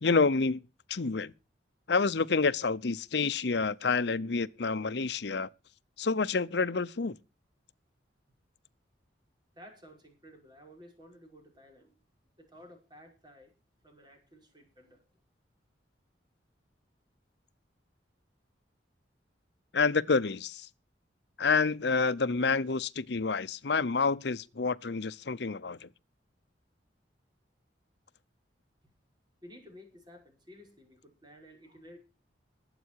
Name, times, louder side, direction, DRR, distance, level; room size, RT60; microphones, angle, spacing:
voice 1, 0.0-0.6 0.9-1.3 1.9-5.5 6.0-7.2 19.7-20.6 21.4-25.9, left 4 dB, 65° left, 0.7 m, -28 dB
voice 2, 9.6-11.9 12.4-13.5 13.8-15.0 28.8-28.9 29.4-32.0, equal, 25° right, 5.5 m, -54 dB
21.0 x 8.4 x 4.7 m
head